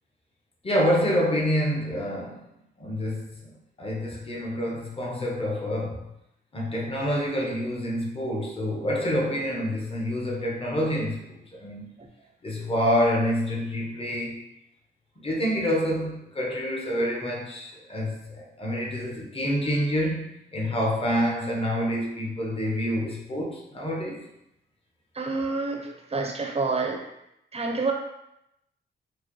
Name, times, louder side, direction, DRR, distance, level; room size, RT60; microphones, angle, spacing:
voice 1, 0.6-2.5 2.8-6.1 6.5-12.0 12.4-14.4 15.2-24.2, equal, 30° left, -2 dB, 0.9 m, -27 dB
voice 2, 25.2-27.0 27.5-27.9, right 3 dB, 30° right, 1 dB, 0.6 m, -28 dB
4.7 x 2.0 x 3.0 m, 0.83 s
wide cardioid pair, 95°, 19 cm